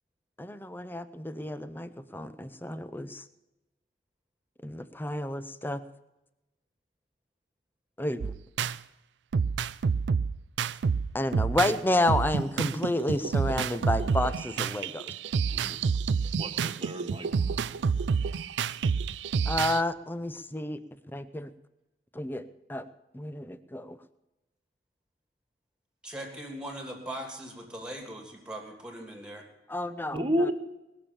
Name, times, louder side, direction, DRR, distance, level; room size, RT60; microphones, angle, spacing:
voice 1, 0.4-3.2 4.6-5.8 8.0-8.3 11.1-15.1 19.5-20.8 21.1-21.5 22.1-22.4 22.7-22.8 23.1-24.0 29.7-30.2, left 1 dB, 10° left, 12 dB, 0.7 m, -30 dB
sound 1, 8.2-8.8 9.3-11.8 12.1-19.8, right 5 dB, 85° right, 0.4 m, -28 dB
voice 2, 15.5-15.8 16.4-17.3 17.6-17.9 30.1-30.5, equal, 30° right, 4 dB, 1.6 m, -31 dB
voice 3, 26.0-29.5, right 1 dB, 5° right, 2 dB, 2.8 m, -40 dB
20.5 x 7.1 x 7.1 m, 0.97 s
head